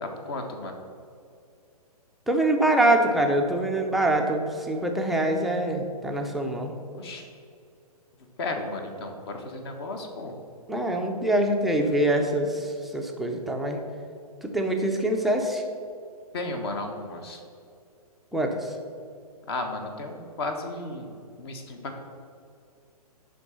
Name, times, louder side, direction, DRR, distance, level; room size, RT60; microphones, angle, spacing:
voice 1, 0.0-0.8 7.0-7.3 8.4-10.3 16.3-17.4 19.5-21.1 21.4-22.0, left 2 dB, 40° left, 4 dB, 1.2 m, -34 dB
voice 2, 2.3-6.7 10.7-13.8 14.4-15.6 18.3-18.7, right 1 dB, ahead, 1 dB, 0.5 m, -24 dB
11.0 x 3.8 x 7.0 m, 2.4 s
figure-of-eight pair, 125°, 20 cm